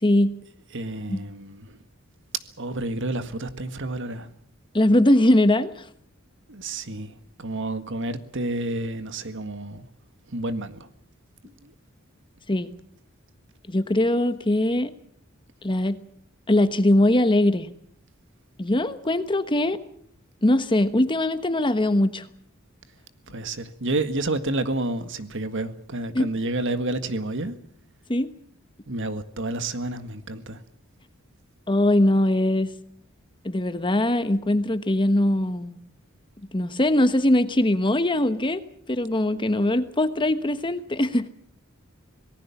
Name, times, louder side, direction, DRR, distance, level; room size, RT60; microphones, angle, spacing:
voice 1, 0.0-0.3 1.1-1.2 4.7-5.9 12.5-12.7 13.7-14.9 15.6-16.0 16.5-17.7 18.6-19.8 20.4-22.3 26.1-26.3 28.1-28.3 31.7-32.7 33.4-35.8 36.5-38.6 38.9-41.3, left 1 dB, 25° left, 1.1 m, -21 dB
voice 2, 0.7-1.7 2.6-4.3 6.5-9.8 10.3-10.9 11.4-11.7 23.3-27.6 28.9-30.6, right 2 dB, 60° right, 1.8 m, -30 dB
26.0 x 18.5 x 7.2 m
head